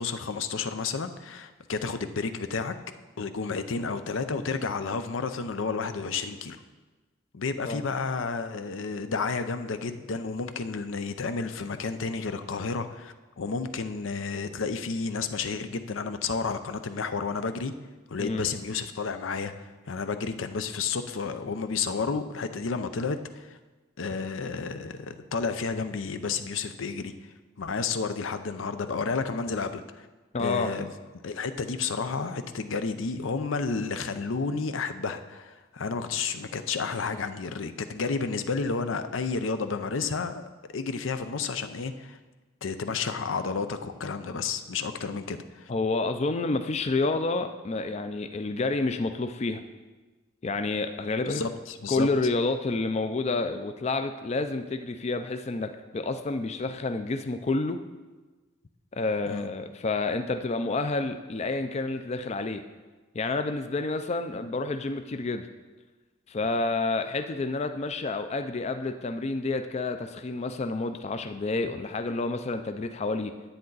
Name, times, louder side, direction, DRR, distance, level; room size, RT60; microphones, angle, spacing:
voice 1, 0.0-2.7 3.2-6.6 7.3-17.7 18.1-19.5 19.9-23.6 24.0-27.1 27.6-30.1 30.4-30.9 31.2-40.5 40.7-42.2 42.6-45.7 51.3-52.1 59.3-59.5 64.3-64.5, left 4 dB, 80° left, 9 dB, 0.6 m, -31 dB
voice 2, 30.3-30.7 45.7-49.6 50.4-51.4 51.9-57.8 58.9-62.6 63.1-65.5 66.3-73.3, left 3 dB, 35° left, 8 dB, 0.4 m, -29 dB
10.0 x 8.5 x 4.0 m, 1.3 s
head